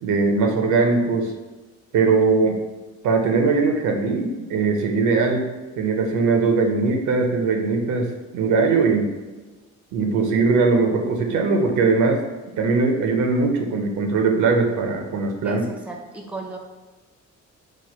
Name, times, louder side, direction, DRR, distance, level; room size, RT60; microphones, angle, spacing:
voice 1, 0.0-1.3 1.9-2.6 3.0-5.5 5.8-8.1 8.3-9.1 9.9-12.2 12.6-15.6, right 4 dB, 80° right, 3 dB, 0.6 m, -20 dB
voice 2, 15.4-16.6, right 3 dB, 5° right, 2 dB, 0.4 m, -35 dB
3.1 x 2.1 x 4.2 m, 1.2 s
cardioid pair, 90°, 30 cm